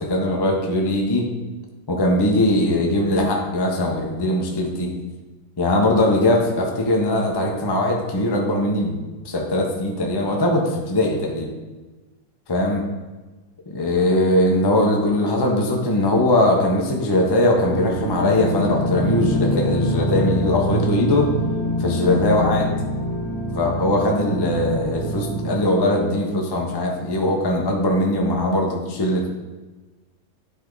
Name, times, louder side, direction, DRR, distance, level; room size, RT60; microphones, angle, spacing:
voice 1, 0.1-1.2 1.9-4.9 5.6-9.0 9.2-11.5 12.5-12.8 13.7-21.3 21.8-22.7 23.5-29.3, left 1 dB, 20° left, 0 dB, 0.7 m, -20 dB
sound 1, 17.2-25.5, equal, 75° right, 2.7 m, -25 dB
10.0 x 3.4 x 3.9 m, 1.2 s
omnidirectional pair, 1.7 m